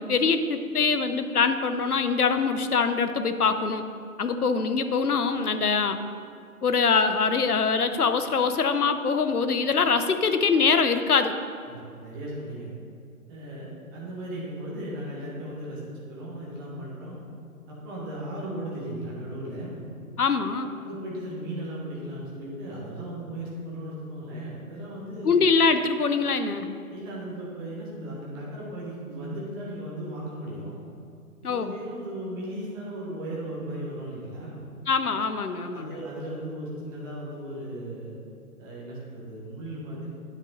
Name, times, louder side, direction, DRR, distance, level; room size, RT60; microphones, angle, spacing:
voice 1, 0.0-3.8 4.2-6.0 6.6-11.3 20.2-20.7 25.2-26.7 31.4-31.7 34.9-36.0, left 5 dB, 80° left, 9 dB, 0.8 m, -23 dB
voice 2, 11.7-12.7 13.3-17.2 17.7-19.8 20.8-25.4 26.9-30.8 31.5-34.6 35.7-38.1 38.6-40.1, right 1 dB, 15° right, -5 dB, 1.2 m, -36 dB
10.5 x 5.4 x 3.9 m, 2.4 s
figure-of-eight pair, 145°, 44 cm